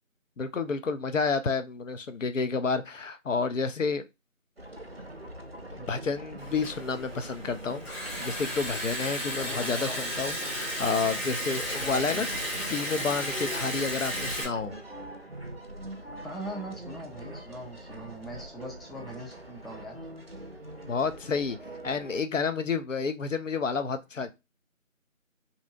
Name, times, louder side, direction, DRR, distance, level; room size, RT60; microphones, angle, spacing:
voice 1, 0.4-4.0 5.8-12.3 12.7-14.7 20.9-21.6 21.8-24.3, left 4 dB, 70° left, 0.5 m, -30 dB
sound 1, 4.6-22.2, right 1 dB, 50° right, 0.5 m, -43 dB
Liquid, 6.4-14.4, equal, 50° left, 1.3 m, -34 dB
voice 2, 9.4-10.1 12.1-12.2 16.2-20.0, equal, ahead, 0.5 m, -41 dB
2.7 x 2.6 x 2.5 m
figure-of-eight pair, 180°, 40 cm